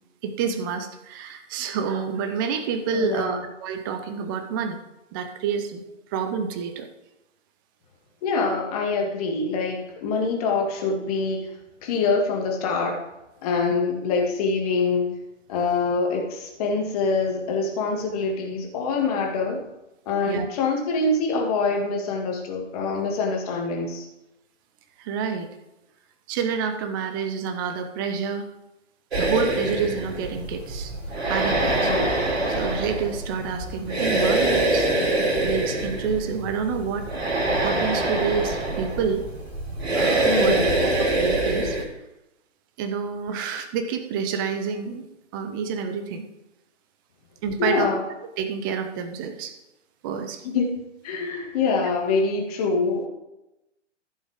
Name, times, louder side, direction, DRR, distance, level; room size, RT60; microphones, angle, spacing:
voice 1, 0.2-4.8 5.1-5.8 6.1-6.9 20.3-20.5 25.0-25.5 26.3-28.5 29.2-30.9 31.2-31.9 32.5-34.9 35.2-39.2 39.9-41.8 42.8-45.1 45.3-46.2 47.4-47.9 48.4-49.5 50.0-50.4, right 6 dB, 15° right, 7 dB, 0.8 m, -28 dB
voice 2, 2.9-3.4 8.2-11.5 11.8-13.0 13.4-15.1 15.5-19.6 20.1-24.0 31.8-32.2 40.2-40.7 47.6-48.0 50.4-50.8 51.0-53.1, left 4 dB, 30° left, 1 dB, 2.4 m, -25 dB
sound 1, 29.1-41.8, right 2 dB, 55° right, 3.5 m, -24 dB
14.5 x 6.9 x 3.8 m, 0.94 s
figure-of-eight pair, 130°, 37 cm